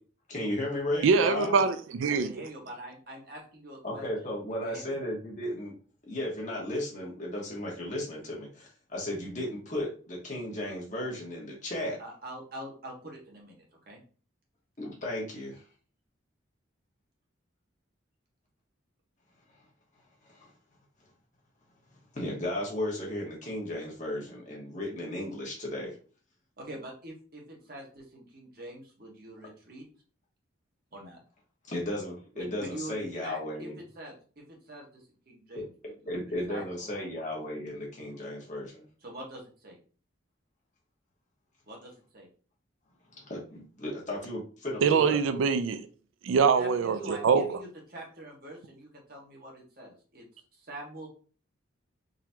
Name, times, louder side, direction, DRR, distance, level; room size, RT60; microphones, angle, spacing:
voice 1, 0.3-1.5 3.8-5.7 6.1-12.0 14.8-15.6 20.4-20.5 22.1-25.9 31.7-33.7 35.5-35.6 36.1-38.8 43.2-45.2, left 1 dB, 40° left, 1.2 m, -35 dB
voice 2, 1.0-2.3 44.8-45.8 46.2-47.6, right 5 dB, 80° right, 0.3 m, -24 dB
voice 3, 2.1-4.0 4.5-5.0 12.0-13.6 13.9-14.0 26.6-29.8 30.9-31.2 32.3-33.7 33.9-34.1 34.5-34.8 35.3-36.2 36.5-37.0 39.0-39.8 41.7-42.3 46.4-50.3 50.7-51.1, right 1 dB, 50° right, 1.2 m, -44 dB
3.9 x 2.9 x 2.7 m
head